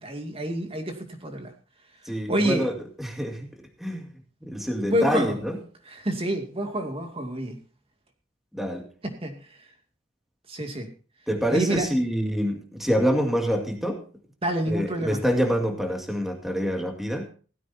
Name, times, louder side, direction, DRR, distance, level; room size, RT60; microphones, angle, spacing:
voice 1, 0.0-1.5 2.3-2.7 4.9-5.4 5.8-7.6 9.0-9.4 10.5-10.9 11.5-11.9 14.4-15.2, right 1 dB, 30° right, 4 dB, 2.3 m, -28 dB
voice 2, 2.1-2.7 3.0-3.5 3.8-4.1 4.4-5.6 8.5-8.9 11.3-14.0 14.7-17.3, equal, ahead, 3 dB, 2.3 m, -26 dB
17.0 x 15.0 x 2.7 m, 0.38 s
head